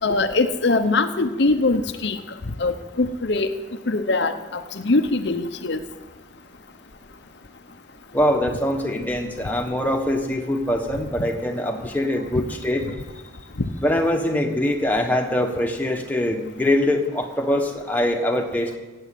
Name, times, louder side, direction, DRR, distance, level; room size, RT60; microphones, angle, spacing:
voice 1, 0.0-2.2 2.6-3.5 3.9-5.8, left 3 dB, 60° left, 8 dB, 0.8 m, -22 dB
voice 2, 8.1-12.8 13.8-18.8, left 1 dB, 10° left, 2 dB, 1.4 m, -23 dB
16.5 x 8.5 x 8.5 m, 1.2 s
head